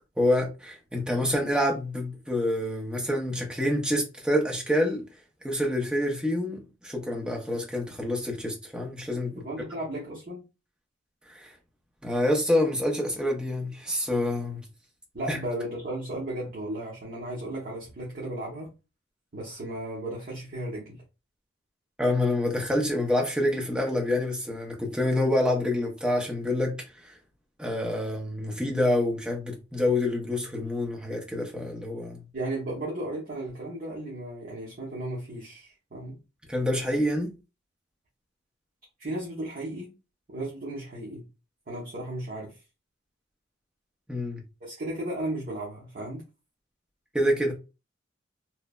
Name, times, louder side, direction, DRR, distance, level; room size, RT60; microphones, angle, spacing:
voice 1, 0.2-5.0 5.4-9.4 11.3-11.5 12.0-14.6 15.3-15.4 22.0-26.8 27.0-27.1 27.6-32.2 36.5-37.3 44.1-44.4 47.1-47.5, left 1 dB, 5° right, 0.6 m, -27 dB
voice 2, 9.4-10.4 15.1-18.7 19.3-21.0 32.3-36.2 39.0-39.9 40.3-41.2 41.7-42.6 44.6-46.2, right 1 dB, 45° right, 0.8 m, -35 dB
3.1 x 2.0 x 2.3 m
head